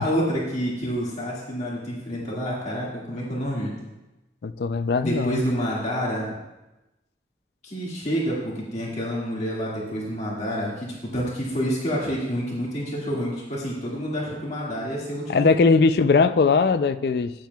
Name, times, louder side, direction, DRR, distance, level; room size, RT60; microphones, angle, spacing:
voice 1, 0.0-3.8 5.0-6.3 7.6-15.6, equal, 40° left, -5 dB, 2.0 m, -28 dB
voice 2, 4.4-5.4 15.3-17.3, left 4 dB, 60° left, 11 dB, 0.4 m, -20 dB
14.5 x 9.3 x 2.3 m, 1.0 s
head